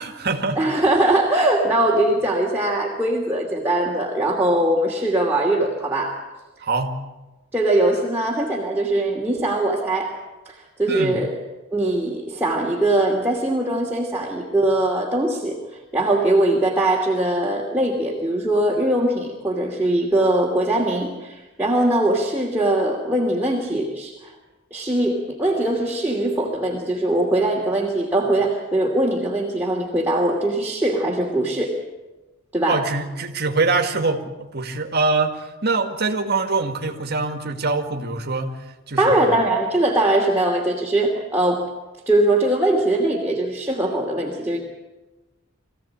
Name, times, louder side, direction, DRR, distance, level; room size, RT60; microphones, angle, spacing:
voice 1, 0.0-0.6 6.6-7.0 10.9-11.2 32.7-38.6 38.9-39.4, right 3 dB, 50° right, 4 dB, 2.1 m, -24 dB
voice 2, 0.6-6.2 7.5-10.1 10.5-11.3 11.7-15.6 15.9-24.3 24.7-31.8 32.5-32.8 39.0-41.7 42.1-44.6, right 1 dB, 10° right, -3 dB, 2.6 m, -21 dB
24.0 x 16.0 x 8.8 m, 1.1 s
head